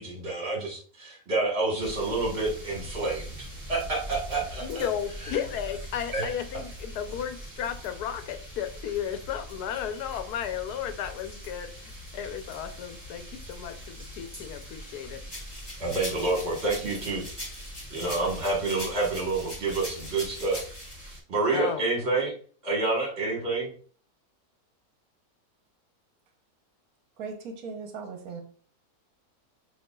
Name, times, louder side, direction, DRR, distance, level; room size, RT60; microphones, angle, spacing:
voice 1, 0.0-4.9 5.2-5.4 6.1-6.3 15.8-17.2 17.9-20.7 21.3-22.3 22.6-23.7, right 3 dB, 45° right, 1.6 m, -28 dB
sound 1, 1.8-21.2, equal, 25° right, 2.0 m, -43 dB
voice 2, 4.6-15.2 18.0-18.3 21.5-21.8, left 9 dB, 80° left, 1.1 m, -34 dB
sound 2, 15.3-20.9, left 1 dB, 15° left, 1.3 m, -41 dB
voice 3, 27.2-28.4, right 4 dB, 70° right, 1.1 m, -38 dB
6.4 x 2.8 x 2.3 m
omnidirectional pair, 1.6 m